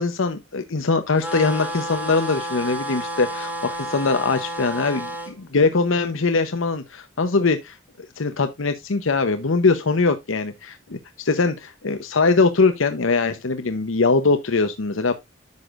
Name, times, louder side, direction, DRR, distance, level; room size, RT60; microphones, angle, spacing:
voice 1, 0.0-7.8 8.2-15.1, left 4 dB, 85° left, 0.8 m, -22 dB
sound 1, 1.2-5.3, right 1 dB, 10° right, 1.3 m, -31 dB
10.5 x 6.9 x 2.4 m
head